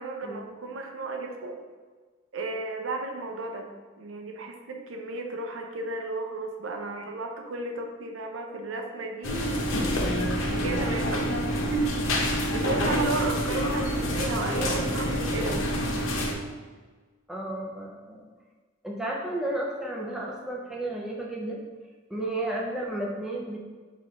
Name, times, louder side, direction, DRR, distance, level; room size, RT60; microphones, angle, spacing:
voice 1, 0.0-1.6 2.3-3.7 4.0-9.7 10.5-11.3 11.7-11.9 12.5-15.8, right 3 dB, 75° right, 3 dB, 0.5 m, -33 dB
sound 1, 9.2-16.3, equal, 90° left, 0.7 m, -27 dB
voice 2, 17.3-18.2 18.8-21.6 22.1-23.6, right 1 dB, 5° right, -3 dB, 0.5 m, -32 dB
4.1 x 2.4 x 4.3 m, 1.4 s
head